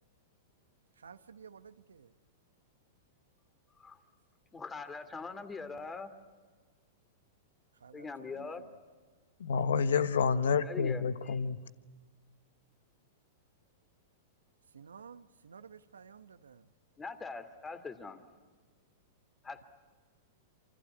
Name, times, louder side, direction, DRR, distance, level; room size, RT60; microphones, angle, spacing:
voice 1, 1.0-2.1 7.8-8.1 14.7-16.6, right 6 dB, 90° right, 1.1 m, -52 dB
voice 2, 4.5-6.1 7.9-8.6 10.6-11.4 17.0-18.2 19.4-19.6, left 4 dB, 15° left, 2.6 m, -42 dB
voice 3, 9.4-11.6, left 6 dB, 80° left, 1.1 m, -29 dB
27.5 x 25.0 x 8.5 m
hypercardioid pair, 110°, 0 cm